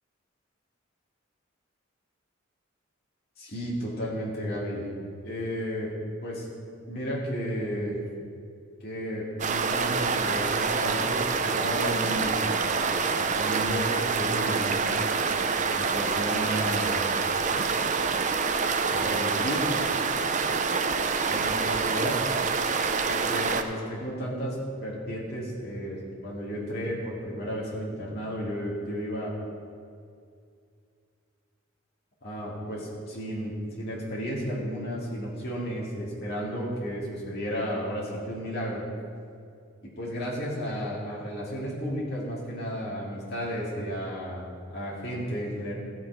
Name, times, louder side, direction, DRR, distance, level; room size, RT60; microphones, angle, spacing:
voice 1, 3.4-4.9 5.2-5.9 6.2-6.5 6.9-8.0 8.8-12.4 13.2-14.9 15.7-17.0 18.8-19.7 21.3-22.2 23.0-29.3 32.2-38.8 39.8-45.7, equal, 55° left, -6 dB, 2.3 m, -33 dB
sound 1, 9.4-23.6, right 5 dB, 40° right, 0.6 m, -26 dB
15.0 x 6.4 x 4.7 m, 2.3 s
head